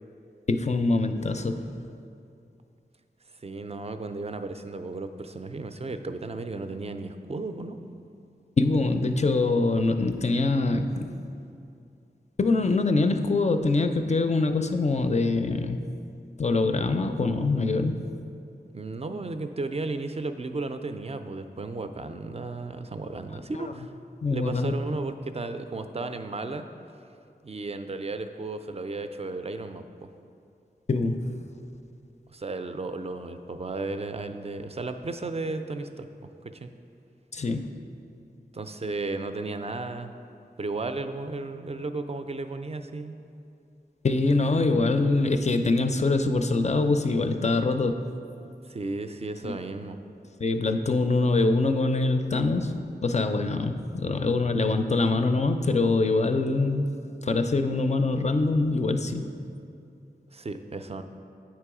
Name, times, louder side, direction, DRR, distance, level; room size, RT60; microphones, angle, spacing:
voice 1, 0.5-1.7 8.6-11.1 12.4-15.8 16.4-18.1 23.5-23.7 24.2-24.7 30.9-31.3 37.3-37.7 44.0-48.0 49.4-49.5 50.4-56.9 57.2-59.3, left 3 dB, 40° left, 7 dB, 0.4 m, -24 dB
voice 2, 3.4-7.8 18.7-23.9 24.3-26.7 27.4-29.8 32.3-36.1 36.4-36.7 38.5-40.1 40.6-43.2 48.6-50.0 60.3-61.0, right 3 dB, 35° right, 8 dB, 0.4 m, -34 dB
8.9 x 3.0 x 4.8 m, 2.5 s
wide cardioid pair, 60°, 17 cm